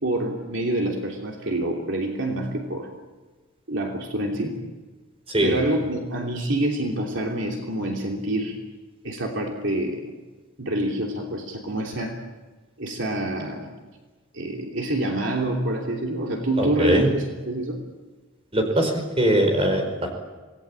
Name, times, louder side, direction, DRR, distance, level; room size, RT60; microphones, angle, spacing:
voice 1, 0.0-2.9 3.7-4.6 5.4-8.6 9.0-10.1 10.6-12.2 12.8-13.7 14.3-17.8, right 1 dB, 60° right, 1 dB, 3.1 m, -27 dB
voice 2, 16.6-17.1 18.5-20.1, right 1 dB, 25° right, 4 dB, 4.9 m, -21 dB
27.0 x 19.5 x 8.8 m, 1.3 s
head